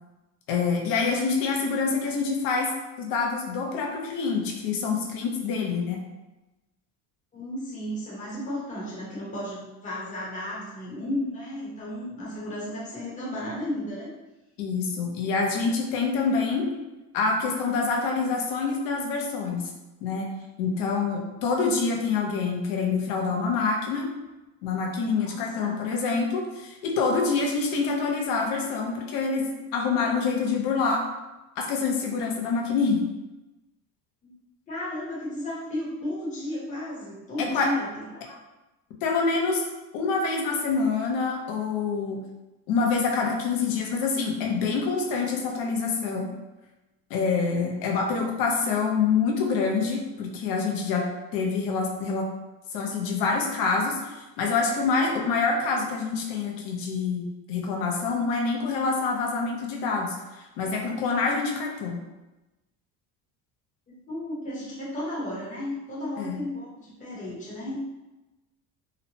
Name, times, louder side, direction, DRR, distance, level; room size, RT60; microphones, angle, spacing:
voice 1, 0.5-2.7 3.0-6.0 14.6-16.7 17.1-19.7 20.0-20.3 20.6-24.1 24.6-31.0 31.6-33.0 37.4-37.7 39.0-39.6 39.9-42.2 42.7-46.3 47.1-52.3 52.7-62.0 66.2-66.4, left 4 dB, 75° left, 0 dB, 0.7 m, -26 dB
voice 2, 7.3-14.1 25.2-25.7 34.2-34.3 34.7-38.4 64.1-67.8, left 1 dB, 20° left, -7 dB, 0.9 m, -34 dB
3.0 x 2.1 x 2.8 m, 1.0 s
cardioid pair, 150°, 35 cm